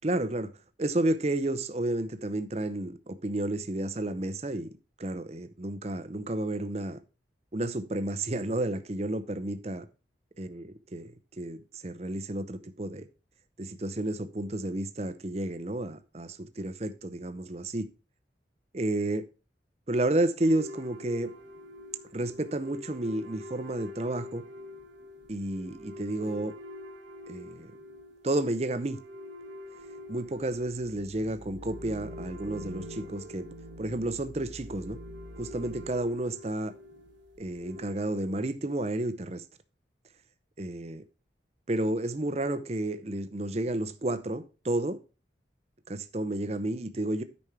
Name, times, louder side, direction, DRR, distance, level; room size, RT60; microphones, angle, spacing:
voice 1, 0.0-0.5 0.8-4.7 5.0-7.0 7.5-9.9 10.4-13.1 13.6-17.9 18.7-19.2 19.9-21.3 22.1-24.4 25.3-26.5 27.3-27.7 28.2-29.0 30.1-33.5 33.8-35.0 35.4-36.7 37.4-39.4 40.6-41.0 41.7-45.0 45.9-47.2, right 1 dB, 35° right, 0.7 m, -31 dB
sound 1, 20.4-37.9, left 1 dB, 85° right, 1.2 m, -45 dB
9.8 x 5.3 x 4.7 m
head